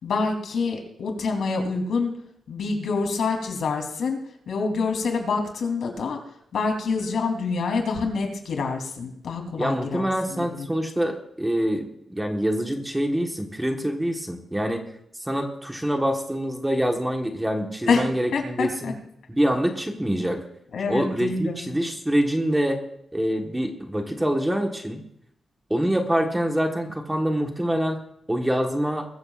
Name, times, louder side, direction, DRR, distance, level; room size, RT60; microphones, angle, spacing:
voice 1, 0.0-2.1 2.5-4.2 4.5-6.2 6.5-10.7 17.9-18.0 18.3-18.9 20.7-21.7, left 4 dB, 75° left, 3 dB, 3.3 m, -26 dB
voice 2, 9.6-14.8 15.2-18.9 19.3-20.4 20.9-22.8 23.1-25.0 25.7-28.0 28.3-29.1, equal, 5° right, 2 dB, 1.4 m, -25 dB
22.0 x 14.5 x 2.5 m, 0.72 s
wide cardioid pair, 170°, 0 cm